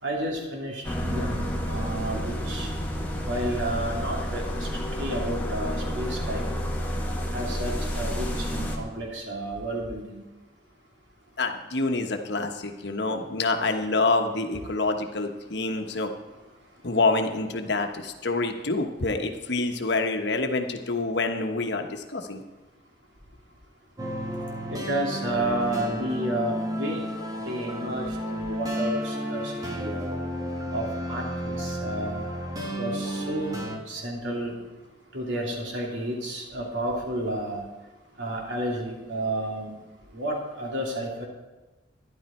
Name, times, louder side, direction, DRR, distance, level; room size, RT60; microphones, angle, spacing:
voice 1, 0.0-2.7 3.2-4.7 5.0-6.5 7.3-10.2 24.7-27.1 27.4-30.2 30.7-32.3 32.8-33.6 33.9-34.5 35.1-37.6 38.2-39.7 40.1-41.3, right 1 dB, 85° right, -1 dB, 2.8 m, -31 dB
sound 1, 0.8-8.8, equal, 10° left, 1.7 m, -30 dB
voice 2, 11.4-16.1 16.8-22.4, left 3 dB, 65° left, 5 dB, 1.2 m, -27 dB
sound 2, 24.0-33.8, equal, 20° right, 1.5 m, -32 dB
13.0 x 11.0 x 4.4 m, 1.2 s
head